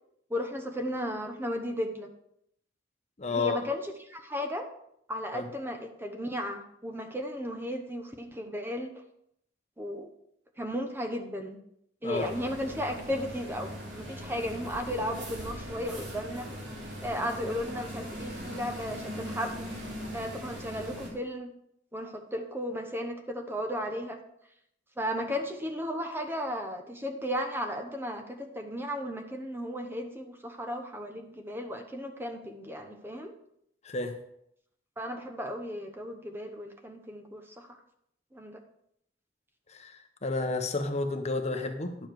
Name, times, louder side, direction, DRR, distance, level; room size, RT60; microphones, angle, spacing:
voice 1, 0.3-2.1 3.3-3.8 4.1-4.6 5.1-8.9 9.8-10.1 10.6-11.6 12.0-13.7 14.0-16.5 17.0-19.7 20.1-21.5 21.9-24.2 25.0-33.3 35.0-37.7 38.3-38.6, equal, 15° right, 4 dB, 1.0 m, -35 dB
voice 2, 3.2-3.6 5.3-5.5 12.0-12.3 33.8-34.2 39.7-42.1, left 3 dB, 40° left, 6 dB, 0.9 m, -31 dB
sound 1, 12.1-21.1, equal, 70° right, 2.7 m, -40 dB
10.5 x 7.2 x 4.7 m, 0.75 s
head